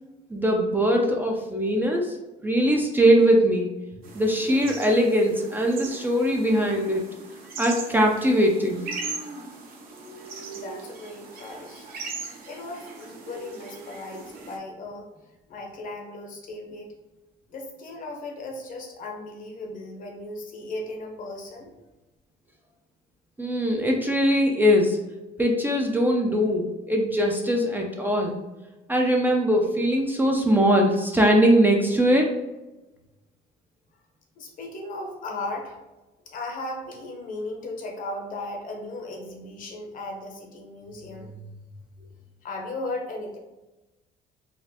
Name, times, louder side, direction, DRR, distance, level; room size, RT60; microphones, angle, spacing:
voice 1, 0.3-2.2 2.4-3.7 4.1-7.1 7.6-8.9 23.4-25.0 25.4-28.4 28.9-32.3, equal, 10° right, 0 dB, 0.5 m, -21 dB
sound 1, 4.0-14.6, right 4 dB, 60° right, 0.9 m, -39 dB
voice 2, 10.5-11.9 12.5-15.1 15.5-16.9 17.5-21.7 34.4-35.8 36.2-41.6 42.4-43.4, left 2 dB, 55° left, 2 dB, 0.9 m, -36 dB
4.0 x 2.5 x 2.8 m, 1.0 s
cardioid pair, 110°, 17 cm